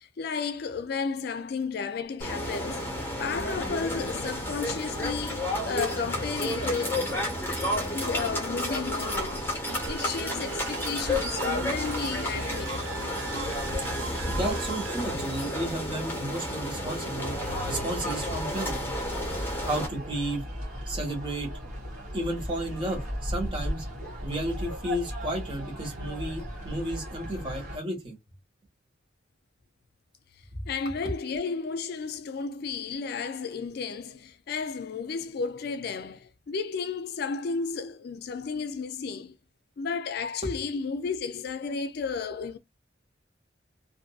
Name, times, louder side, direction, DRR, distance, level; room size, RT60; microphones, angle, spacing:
voice 1, 0.0-2.9 3.2-7.1 7.7-9.5 9.8-12.8 30.7-39.4 39.8-42.6, left 5 dB, 60° left, 0.4 m, -33 dB
sound 1, 2.2-19.9, left 1 dB, 10° left, 1.1 m, -31 dB
sound 2, 9.7-15.0, right 7 dB, 90° right, 0.3 m, -40 dB
voice 2, 14.3-17.4 17.7-18.8 19.6-20.4 20.9-21.5 22.1-23.8 24.2-28.2, right 1 dB, 30° right, 1.4 m, -32 dB
sound 3, 17.3-27.8, equal, 50° right, 1.4 m, -37 dB
2.6 x 2.5 x 2.3 m
head